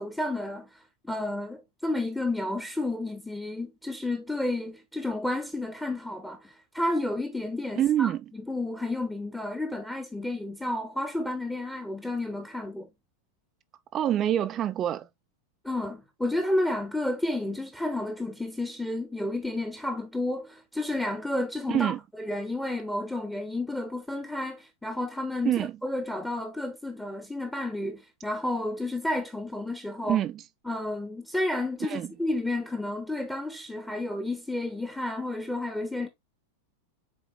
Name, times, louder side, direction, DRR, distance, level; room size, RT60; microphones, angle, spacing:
voice 1, 0.0-12.9 15.6-30.2 30.6-36.1, left 1 dB, 5° left, 1.0 m, -31 dB
voice 2, 7.8-8.2 13.9-15.1 21.7-22.0 25.4-25.7 30.1-30.3 31.8-32.1, right 11 dB, 30° right, 0.4 m, -26 dB
7.2 x 4.3 x 3.1 m
figure-of-eight pair, 90°, 0 cm